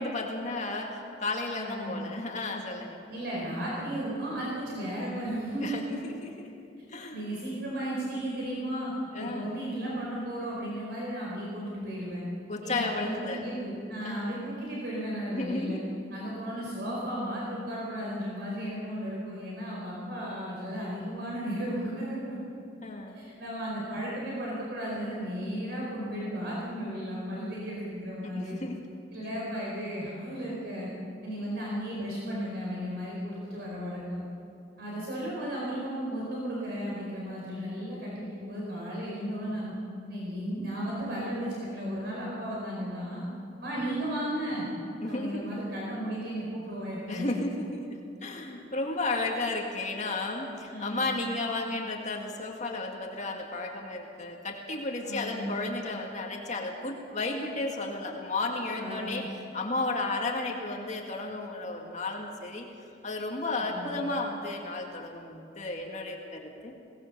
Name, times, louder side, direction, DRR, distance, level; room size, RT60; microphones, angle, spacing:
voice 1, 0.0-3.0 5.6-7.2 9.1-9.5 12.5-13.4 14.0-14.4 15.3-15.8 22.8-23.2 28.2-28.8 45.0-45.6 47.1-47.8 48.2-59.2 59.5-62.7 63.0-66.7, left 2 dB, 40° left, 1 dB, 2.1 m, -33 dB
voice 2, 1.5-1.9 3.1-5.8 7.1-12.2 12.6-15.8 16.1-22.4 23.1-28.6 29.1-30.9 31.2-34.2 34.8-39.7 40.1-43.2 43.6-44.7 45.1-47.4 50.7-51.1 55.0-55.5 58.7-59.1 63.6-63.9, equal, 65° right, -5 dB, 4.8 m, -34 dB
21.0 x 18.5 x 6.8 m, 2.5 s
head